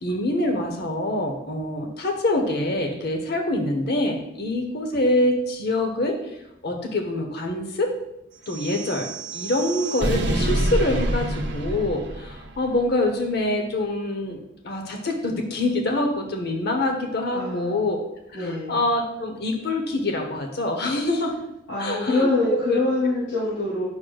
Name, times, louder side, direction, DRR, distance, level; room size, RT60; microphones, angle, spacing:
voice 1, 0.0-6.3 6.6-8.0 8.5-18.0 18.3-21.3 21.8-22.8, left 1 dB, 55° left, 4 dB, 0.8 m, -25 dB
sound 1, 8.4-12.8, right 1 dB, 55° right, 0.8 m, -27 dB
voice 2, 17.3-17.8 18.3-18.8 21.7-23.8, left 2 dB, 80° left, -10 dB, 2.7 m, -24 dB
9.5 x 6.2 x 2.3 m, 0.84 s
head